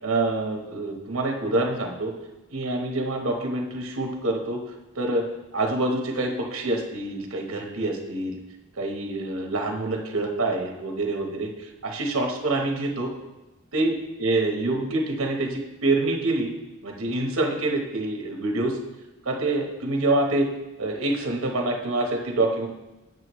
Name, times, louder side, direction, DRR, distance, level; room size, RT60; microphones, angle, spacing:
voice 1, 0.0-2.1 2.5-4.6 4.9-5.2 5.5-8.4 8.8-13.1 13.7-16.5 16.8-18.8 19.2-20.5 20.8-22.7, right 2 dB, 65° right, 2 dB, 1.1 m, -26 dB
7.8 x 7.4 x 3.1 m, 0.99 s
head